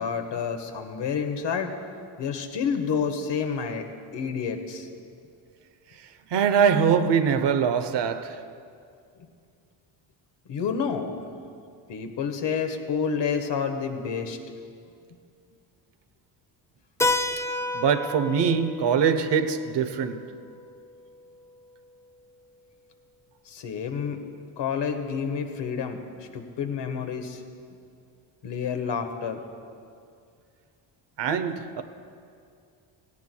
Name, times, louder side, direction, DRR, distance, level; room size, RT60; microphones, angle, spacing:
voice 1, 0.0-1.7 2.2-3.9 4.1-4.9 10.5-11.2 11.9-14.4 23.5-24.2 24.6-26.0 26.3-27.4 28.4-29.4, left 6 dB, 60° left, 1.4 m, -29 dB
voice 2, 6.3-8.4 17.7-20.3 31.2-31.8, right 7 dB, 60° right, 1.0 m, -23 dB
Keyboard (musical), 17.0-21.5, left 2 dB, 5° left, 0.5 m, -31 dB
17.0 x 16.5 x 2.3 m
supercardioid pair, 70°, 48 cm